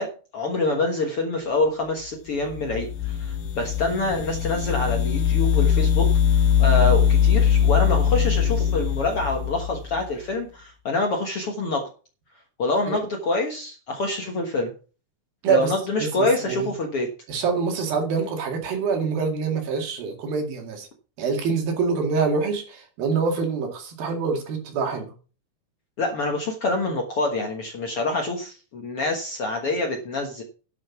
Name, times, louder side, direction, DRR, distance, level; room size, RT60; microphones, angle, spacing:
voice 1, 0.0-11.9 12.6-14.7 15.5-17.1 26.0-30.4, left 2 dB, 55° left, 2 dB, 1.7 m, -26 dB
sound 1, 2.5-10.0, left 8 dB, 75° left, 2.8 m, -21 dB
voice 2, 15.4-16.7 17.3-20.9 21.2-25.1, right 5 dB, 70° right, 3 dB, 4.0 m, -25 dB
11.0 x 6.3 x 6.0 m, 0.37 s
omnidirectional pair, 4.3 m